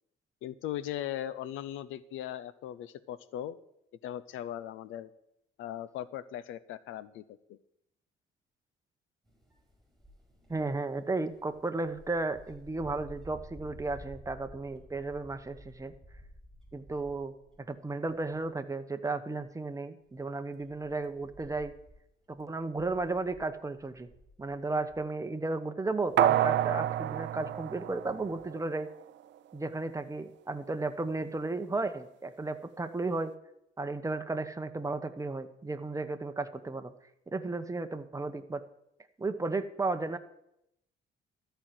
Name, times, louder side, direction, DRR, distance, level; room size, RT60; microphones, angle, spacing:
voice 1, 0.4-3.6 4.0-5.1 5.6-7.2 7.5-7.6, left 11 dB, 90° left, 16 dB, 0.6 m, -38 dB
sound 1, 9.2-17.7 18.1-18.5 19.0-19.1 20.0-25.0, equal, ahead, 5.0 m, -53 dB
voice 2, 10.5-15.9 16.7-17.3 17.7-21.7 22.3-24.1 24.4-28.9 29.5-33.3 33.8-36.9 37.3-38.6 39.2-40.2, right 3 dB, 15° right, 8 dB, 0.9 m, -34 dB
sound 2, 26.2-28.7 29.1-29.2, right 12 dB, 65° right, 0.5 m, -28 dB
13.5 x 4.6 x 8.8 m, 0.81 s
cardioid pair, 90°, 20 cm